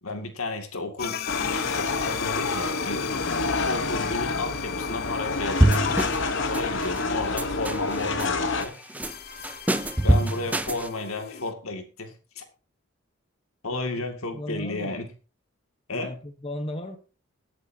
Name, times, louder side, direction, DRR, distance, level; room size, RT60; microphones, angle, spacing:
voice 1, 0.0-1.2 1.8-3.1 3.7-5.9 6.5-8.8 10.0-12.4 13.6-15.1 15.9-16.1, left 2 dB, 80° left, 6 dB, 2.2 m, -33 dB
sound 1, 1.0-11.5, left 8 dB, 45° left, 0.6 m, -37 dB
sound 2, 1.3-8.6, left 3 dB, 60° left, 1.1 m, -28 dB
sound 3, 5.6-6.3 6.5-7.0 7.4-8.3 8.6-9.1 9.4-10.9, right 1 dB, 5° right, 0.5 m, -24 dB
voice 2, 13.7-14.0 14.3-15.0 15.9-17.0, left 1 dB, 25° left, 7 dB, 0.9 m, -35 dB
20.0 x 8.3 x 2.8 m, 0.35 s
head